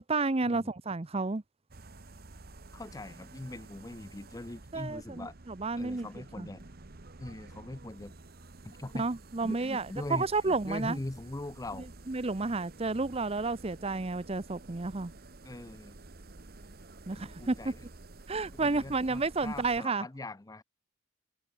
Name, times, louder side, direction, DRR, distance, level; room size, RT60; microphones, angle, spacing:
voice 1, 0.0-1.4 4.7-6.1 6.4-6.5 8.9-11.0 12.1-15.1 17.1-17.7 18.3-20.1, right 3 dB, 30° right, 0.7 m, -31 dB
sound 1, 1.7-19.8, right 2 dB, 45° right, 1.2 m, -51 dB
voice 2, 2.7-5.3 5.8-6.6 7.2-8.1 8.6-9.1 9.4-11.9 15.4-16.0 17.1-17.8 18.5-20.6, left 2 dB, 15° left, 0.5 m, -41 dB
head